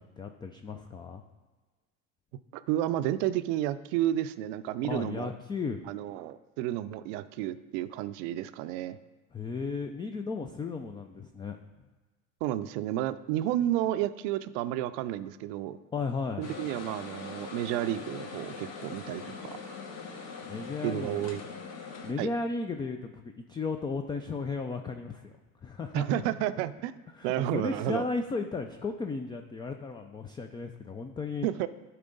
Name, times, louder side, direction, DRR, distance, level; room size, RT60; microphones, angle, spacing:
voice 1, 0.2-1.2 4.8-5.9 9.3-11.6 15.9-16.5 20.5-21.2 22.0-25.3 25.6-26.2 27.1-31.5, left 4 dB, 10° left, 5 dB, 0.3 m, -35 dB
voice 2, 2.5-5.3 5.9-9.0 12.4-15.8 16.4-19.7 20.8-21.4 22.2-22.3 25.9-26.9 27.2-28.1 31.4-31.7, right 13 dB, 65° right, 14 dB, 0.5 m, -31 dB
sound 1, 16.4-22.1, left 5 dB, 40° left, 1.3 m, -42 dB
11.0 x 4.4 x 3.9 m, 1.2 s
hypercardioid pair, 85°, 41 cm